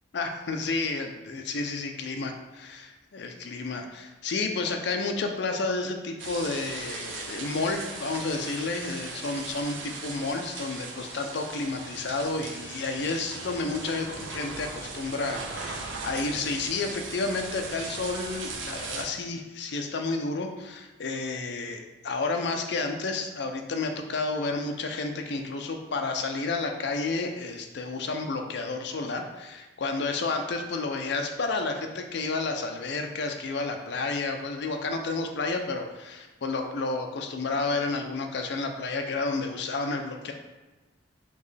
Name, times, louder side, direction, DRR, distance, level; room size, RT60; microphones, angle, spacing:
voice 1, 0.1-2.3 2.6-40.3, left 3 dB, 60° left, 4 dB, 0.5 m, -31 dB
sound 1, 6.2-19.0, right 3 dB, 80° right, 0.7 m, -38 dB
4.4 x 3.1 x 3.2 m, 1.2 s
head